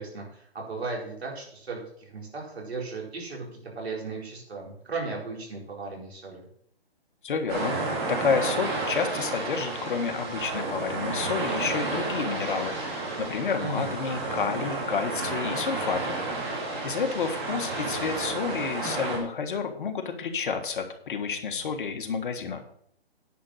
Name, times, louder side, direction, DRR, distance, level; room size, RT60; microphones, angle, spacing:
voice 1, 0.0-6.5 13.6-13.9, right 3 dB, 75° right, -2 dB, 4.4 m, -36 dB
voice 2, 7.2-7.7 8.1-16.2 16.8-22.6, left 5 dB, 55° left, 5 dB, 1.6 m, -30 dB
sound 1, 7.5-19.2, right 3 dB, 25° right, 2.5 m, -31 dB
10.0 x 5.4 x 6.3 m, 0.65 s
hypercardioid pair, 155°, 31 cm